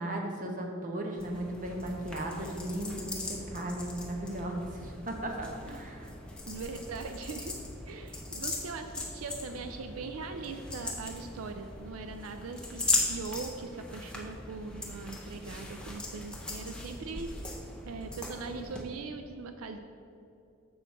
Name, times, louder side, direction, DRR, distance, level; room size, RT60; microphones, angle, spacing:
voice 1, 0.0-6.1, right 1 dB, 40° right, 2 dB, 0.8 m, -36 dB
sound 1, 1.2-18.8, left 2 dB, 5° left, 0.7 m, -39 dB
voice 2, 6.4-7.5 7.9-17.5 17.9-19.8, right 4 dB, 80° right, 7 dB, 0.4 m, -41 dB
7.0 x 6.2 x 4.1 m, 2.7 s
head